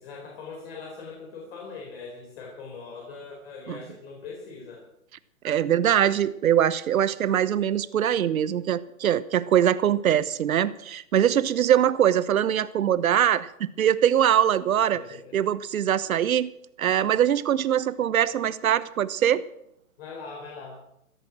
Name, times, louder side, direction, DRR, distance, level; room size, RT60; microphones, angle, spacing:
voice 1, 0.0-4.8 14.9-15.3 16.0-16.2 20.0-20.8, left 4 dB, 45° left, 0 dB, 4.2 m, -41 dB
voice 2, 5.4-15.0 15.3-16.5 16.8-19.4, right 10 dB, 70° right, 16 dB, 1.1 m, -22 dB
17.0 x 13.0 x 6.1 m, 0.76 s
hypercardioid pair, 150°, 42 cm